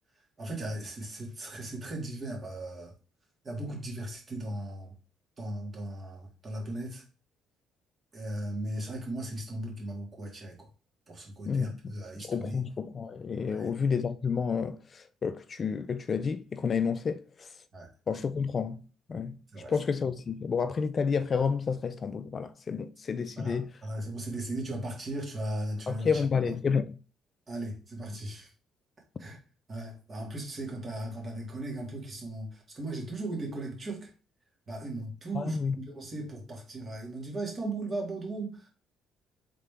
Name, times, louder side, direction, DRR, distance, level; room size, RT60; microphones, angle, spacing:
voice 1, 0.4-2.9 3.4-4.9 5.4-7.0 8.1-10.7 11.1-12.6 13.5-13.7 17.7-17.9 19.5-19.7 23.4-26.2 27.5-28.5 29.2-29.4 29.7-34.1 34.7-38.7, right 1 dB, 35° right, 2.0 m, -37 dB
voice 2, 11.5-17.5 18.1-18.8 19.1-19.4 19.7-23.7 25.9-26.9 35.3-35.8, left 6 dB, 40° left, 0.3 m, -30 dB
3.7 x 3.6 x 3.4 m
cardioid pair, 90°, 0 cm